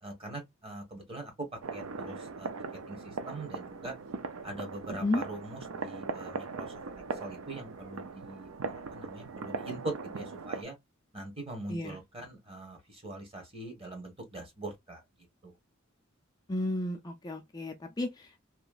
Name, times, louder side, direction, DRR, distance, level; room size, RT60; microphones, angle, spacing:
voice 1, 0.0-1.5 1.7-2.5 2.9-3.9 4.4-6.7 7.2-10.8 11.1-15.0 15.4-15.5, right 2 dB, 25° right, 1.3 m, -42 dB
sound 1, 1.6-10.6, right 4 dB, 80° right, 0.5 m, -39 dB
voice 2, 4.9-5.2 11.7-12.0 16.5-18.4, left 2 dB, 20° left, 0.4 m, -33 dB
3.1 x 2.8 x 2.4 m
head